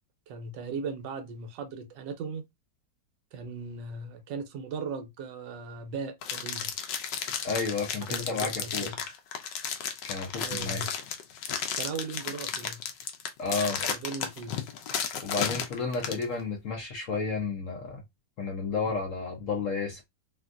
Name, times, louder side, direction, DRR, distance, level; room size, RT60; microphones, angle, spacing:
voice 1, 0.3-2.4 3.3-6.7 8.1-8.9 10.4-10.9 11.7-12.8 13.9-14.6, right 4 dB, 85° right, 1.3 m, -38 dB
sound 1, 6.2-16.2, left 8 dB, 80° left, 1.2 m, -33 dB
voice 2, 7.4-8.8 10.0-10.8 13.4-13.8 15.2-18.0 18.4-20.0, left 4 dB, 60° left, 0.8 m, -31 dB
3.5 x 2.4 x 2.4 m
omnidirectional pair, 2.0 m